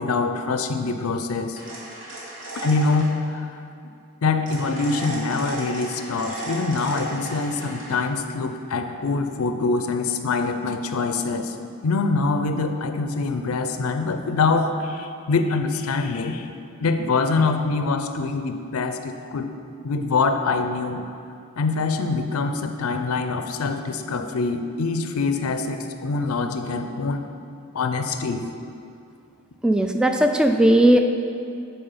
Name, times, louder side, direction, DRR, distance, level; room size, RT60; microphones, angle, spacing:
voice 1, 0.0-1.6 2.5-3.6 4.2-11.6 11.8-16.5 16.8-19.5 19.8-21.1 21.6-27.3 27.7-28.5, left 3 dB, 75° left, 7 dB, 0.5 m, -24 dB
sound 1, 1.5-3.1 4.5-8.0, right 1 dB, 55° right, 1.7 m, -34 dB
voice 2, 29.6-31.0, right 1 dB, 5° right, 5 dB, 0.3 m, -17 dB
8.7 x 4.3 x 5.5 m, 2.5 s
head